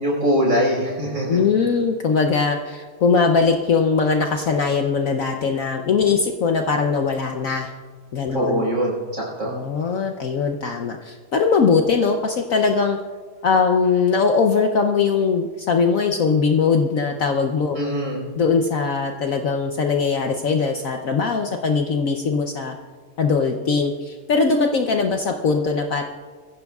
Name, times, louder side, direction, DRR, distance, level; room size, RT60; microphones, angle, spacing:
voice 1, 0.0-1.4 8.3-9.5 17.8-18.2, equal, 45° right, -2 dB, 5.2 m, -22 dB
voice 2, 1.3-7.7 8.1-8.6 9.5-13.0 13.4-17.8 18.4-22.8 23.2-26.0, left 5 dB, 60° left, 4 dB, 1.0 m, -20 dB
23.5 x 15.5 x 2.4 m, 1.5 s
omnidirectional pair, 1.9 m